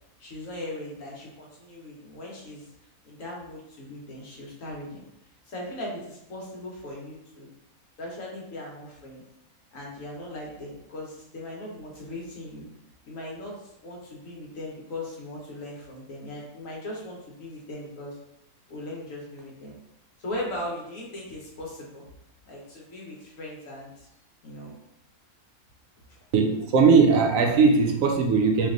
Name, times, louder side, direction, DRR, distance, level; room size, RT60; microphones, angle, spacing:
voice 1, 0.2-2.6 3.0-5.0 5.4-7.5 8.0-9.2 9.7-12.6 13.0-18.2 18.7-19.7 20.2-22.1 22.5-24.1 24.4-24.7, left 1 dB, 65° left, -3 dB, 1.4 m, -38 dB
voice 2, 26.3-28.7, right 5 dB, 70° right, 3 dB, 0.9 m, -19 dB
3.3 x 2.9 x 3.8 m, 0.82 s
omnidirectional pair, 1.5 m